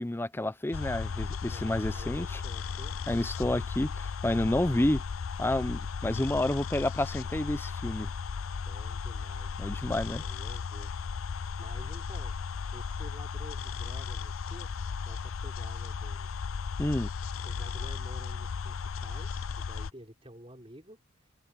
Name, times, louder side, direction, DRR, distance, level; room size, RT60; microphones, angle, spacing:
voice 1, 0.0-2.4 3.1-5.0 5.4-8.1 9.6-10.2 16.8-17.1, left 1 dB, 10° left, 0.5 m, -29 dB
sound 1, 0.7-19.9, left 5 dB, 85° left, 0.5 m, -36 dB
voice 2, 1.5-3.0 8.6-9.8 10.2-11.2 11.6-12.3 12.7-14.7 15.0-16.3 17.4-21.0, right 1 dB, 25° right, 5.6 m, -50 dB
head